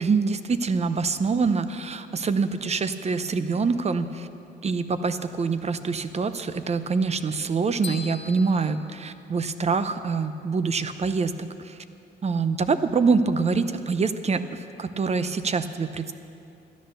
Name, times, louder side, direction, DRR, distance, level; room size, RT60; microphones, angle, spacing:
voice 1, 0.0-4.3 4.6-11.8 12.2-16.1, right 4 dB, 35° right, 11 dB, 0.7 m, -25 dB
sound 1, 7.8-9.8, left 6 dB, 60° left, 1.3 m, -41 dB
13.0 x 10.5 x 6.8 m, 2.6 s
cardioid pair, 90°, 20 cm